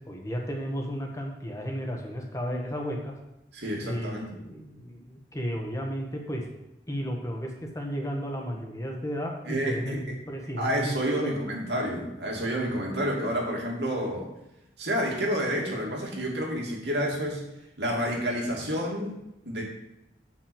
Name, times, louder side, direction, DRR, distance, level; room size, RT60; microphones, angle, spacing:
voice 1, 0.1-3.1 3.8-6.4 6.9-10.0 10.3-11.3, equal, 20° left, 1 dB, 1.3 m, -33 dB
voice 2, 3.5-4.3 9.5-10.0 10.6-14.3 14.8-17.4 17.8-19.1 19.5-19.6, equal, 75° right, -1 dB, 2.5 m, -29 dB
7.9 x 6.0 x 7.1 m, 0.92 s
head